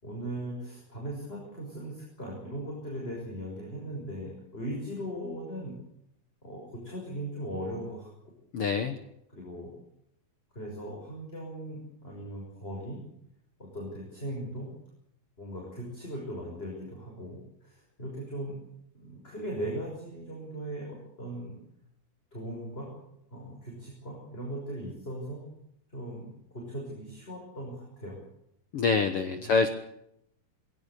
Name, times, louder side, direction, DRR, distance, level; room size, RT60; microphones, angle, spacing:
voice 1, 0.0-5.8 6.4-8.3 9.3-9.7 10.5-13.0 13.6-14.7 15.4-18.6 18.9-21.6 22.3-22.9 23.3-25.5 25.9-28.2 29.4-29.7, right 1 dB, 15° left, -2 dB, 6.1 m, -39 dB
voice 2, 8.5-9.0 28.7-29.7, left 5 dB, 75° left, 9 dB, 1.3 m, -25 dB
21.0 x 17.5 x 8.3 m, 0.77 s
omnidirectional pair, 4.4 m